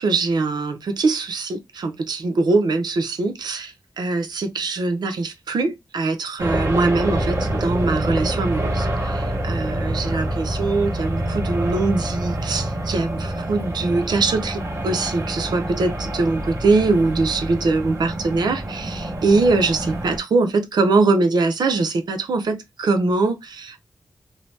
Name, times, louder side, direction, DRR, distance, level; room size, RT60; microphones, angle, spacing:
voice 1, 0.0-23.8, right 3 dB, 85° right, 0.6 m, -22 dB
sound 1, 6.4-20.2, right 1 dB, 40° right, 0.9 m, -26 dB
2.7 x 2.1 x 3.1 m
wide cardioid pair, 75°, 7 cm